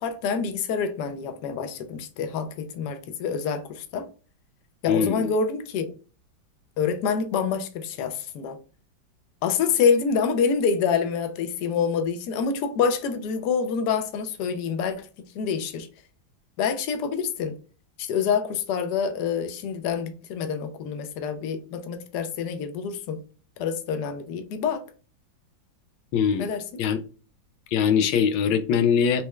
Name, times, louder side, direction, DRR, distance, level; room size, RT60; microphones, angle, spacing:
voice 1, 0.0-4.1 4.8-5.9 6.8-8.6 9.4-15.1 15.3-15.9 16.6-17.5 18.0-23.2 23.6-24.8 26.4-26.6, left 6 dB, 70° left, 1.1 m, -26 dB
voice 2, 4.9-5.3 26.1-26.5 26.8-27.0 27.7-29.2, left 7 dB, 85° left, 1.3 m, -22 dB
4.2 x 3.1 x 2.3 m
omnidirectional pair, 2.1 m